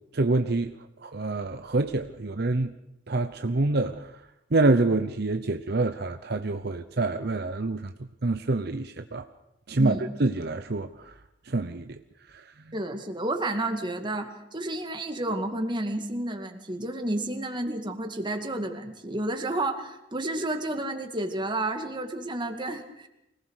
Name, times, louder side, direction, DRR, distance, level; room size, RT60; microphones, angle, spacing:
voice 1, 0.1-0.7 1.0-2.7 3.1-4.1 4.5-7.9 8.2-9.3 9.7-11.1 11.5-12.0 12.3-12.4, right 2 dB, 60° right, 8 dB, 0.8 m, -26 dB
voice 2, 9.8-10.1 12.7-23.1, right 1 dB, 25° right, 5 dB, 2.2 m, -31 dB
25.0 x 18.5 x 6.5 m, 0.85 s
head